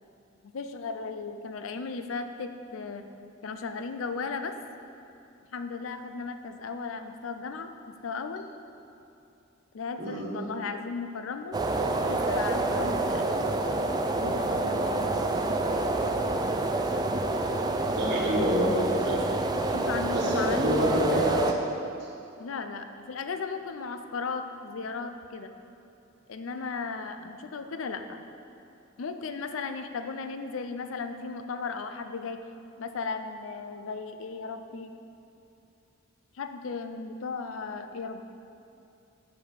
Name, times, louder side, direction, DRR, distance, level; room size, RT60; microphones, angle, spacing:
voice 1, 0.4-3.1 3.4-4.5 5.5-8.5 9.7-11.6 11.8-13.4 14.2-15.2 19.7-20.9 22.4-25.5 26.3-28.2 29.0-32.4 32.8-35.0 36.3-38.2, left 4 dB, 80° left, 8 dB, 0.5 m, -36 dB
sound 1, 11.5-21.5, right 2 dB, 20° right, 0.3 m, -28 dB
voice 2, 17.9-19.2 20.1-21.5, equal, 55° right, -4 dB, 1.2 m, -26 dB
5.8 x 5.4 x 6.5 m, 2.7 s
head